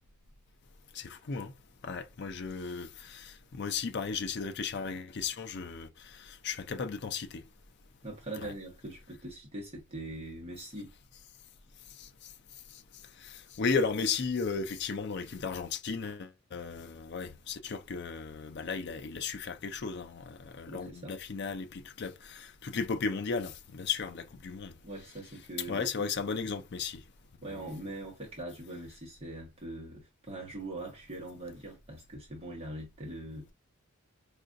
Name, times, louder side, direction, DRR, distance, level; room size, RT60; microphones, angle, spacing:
voice 1, 0.9-1.5 1.8-7.4 8.4-8.5 12.0-12.1 13.2-24.7 25.7-27.0 27.5-27.6, left 5 dB, 50° left, 0.4 m, -35 dB
voice 2, 8.0-10.9 20.7-21.2 24.8-26.1 27.4-33.5, right 1 dB, 25° right, 1.0 m, -42 dB
4.7 x 2.5 x 2.5 m
head